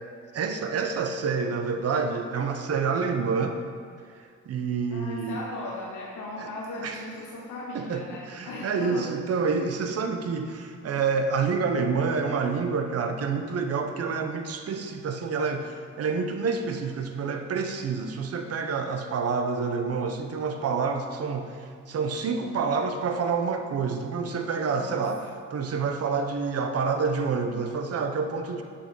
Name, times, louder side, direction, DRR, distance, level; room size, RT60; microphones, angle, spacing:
voice 1, 0.3-3.6 4.5-5.4 6.4-6.5 6.8-7.1 7.7-25.3 25.5-28.6, right 5 dB, 55° right, 6 dB, 0.8 m, -28 dB
voice 2, 4.9-9.1 24.7-25.0, left 2 dB, 90° left, -3 dB, 1.1 m, -37 dB
7.2 x 5.2 x 5.2 m, 2.1 s
cardioid pair, 90°, 30 cm